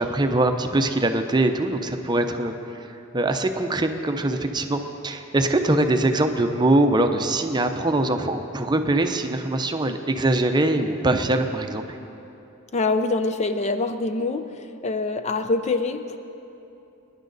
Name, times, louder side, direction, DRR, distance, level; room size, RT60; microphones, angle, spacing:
voice 1, 0.0-2.5 3.1-11.8, right 2 dB, 20° right, 6 dB, 0.7 m, -22 dB
voice 2, 12.7-16.2, left 3 dB, 35° left, 8 dB, 0.5 m, -25 dB
22.5 x 10.5 x 4.0 m, 2.9 s
head